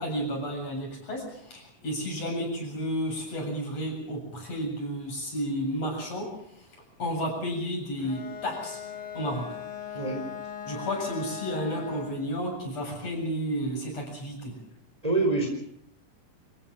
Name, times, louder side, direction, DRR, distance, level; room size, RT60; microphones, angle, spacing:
voice 1, 0.0-6.3 6.6-6.7 7.0-8.8 9.1-9.5 10.7-14.5, equal, 45° left, 0 dB, 8.6 m, -32 dB
Bowed string instrument, 8.0-12.3, left 9 dB, 60° left, 4.0 m, -39 dB
voice 2, 15.0-15.5, right 3 dB, 10° right, 2 dB, 4.2 m, -25 dB
27.0 x 15.5 x 7.5 m, 0.73 s
omnidirectional pair, 4.1 m